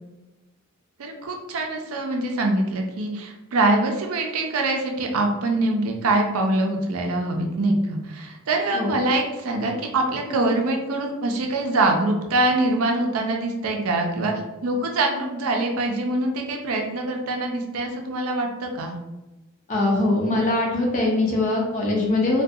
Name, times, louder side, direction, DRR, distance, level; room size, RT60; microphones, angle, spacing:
voice 1, 1.0-14.3 14.6-19.0, right 2 dB, 85° right, 2 dB, 0.5 m, -24 dB
voice 2, 19.7-22.4, left 2 dB, 35° left, -2 dB, 0.5 m, -22 dB
2.3 x 2.2 x 2.6 m, 1.0 s
head